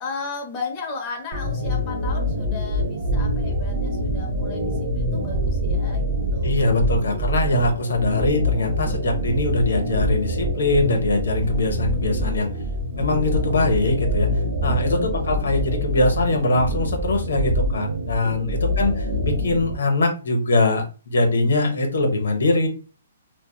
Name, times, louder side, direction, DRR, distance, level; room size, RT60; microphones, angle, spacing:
voice 1, 0.0-6.0 6.3-6.6 15.0-15.3 18.6-19.2, left 4 dB, 20° left, -1 dB, 0.6 m, -35 dB
sound 1, 1.3-19.8, equal, 40° right, 0.5 m, -25 dB
voice 2, 6.4-12.5 13.0-14.3 14.6-22.7, left 2 dB, 80° left, 4 dB, 0.6 m, -22 dB
2.7 x 2.0 x 2.2 m, 0.34 s
hypercardioid pair, 160°, 0 cm